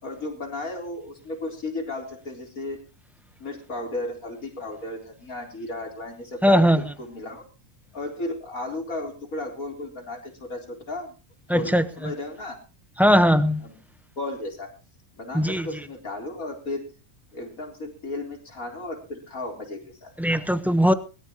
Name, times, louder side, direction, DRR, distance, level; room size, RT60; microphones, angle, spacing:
voice 1, 0.0-2.8 3.4-7.4 7.9-11.1 11.5-12.6 13.6-13.8 14.2-14.7 15.2-16.9 17.3-20.1, left 2 dB, 60° left, 2 dB, 4.4 m, -34 dB
voice 2, 6.4-6.8 11.5-11.8 13.0-13.6 15.3-15.7 20.2-20.9, equal, ahead, 10 dB, 0.9 m, -19 dB
22.0 x 13.5 x 3.0 m, 0.33 s
omnidirectional pair, 1.7 m